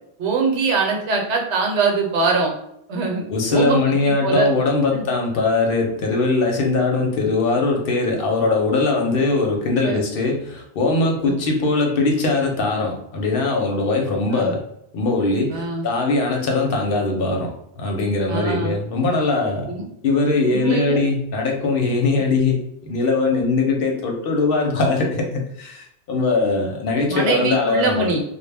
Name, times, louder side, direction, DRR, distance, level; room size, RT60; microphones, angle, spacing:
voice 1, 0.2-2.5 2.9-3.2 3.5-4.5 4.9-5.0 9.8-10.0 11.2-11.3 14.3-14.5 15.5-15.8 18.3-18.7 19.7-19.9 20.5-21.0 27.1-28.2, right 4 dB, 80° right, 1 dB, 1.0 m, -22 dB
voice 2, 3.3-14.6 14.9-17.5 17.8-19.7 20.0-28.1, left 3 dB, 60° left, 1 dB, 0.7 m, -21 dB
2.1 x 2.1 x 3.2 m, 0.77 s
omnidirectional pair, 1.2 m